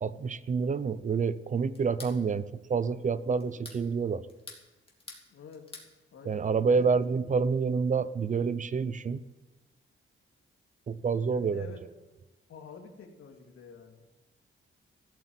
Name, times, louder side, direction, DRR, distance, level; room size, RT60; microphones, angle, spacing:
voice 1, 0.0-4.2 6.2-9.2 10.9-11.7, right 5 dB, 35° right, 16 dB, 0.5 m, -28 dB
sound 1, 1.7-2.2 3.4-3.8 4.3-5.3 5.5-5.9, left 3 dB, 25° left, 2.5 m, -46 dB
voice 2, 5.3-5.6 6.1-7.2 11.3-11.8 12.5-14.0, left 5 dB, 90° left, 3 dB, 2.4 m, -48 dB
15.0 x 8.3 x 8.8 m, 1.1 s
wide cardioid pair, 145°, 21 cm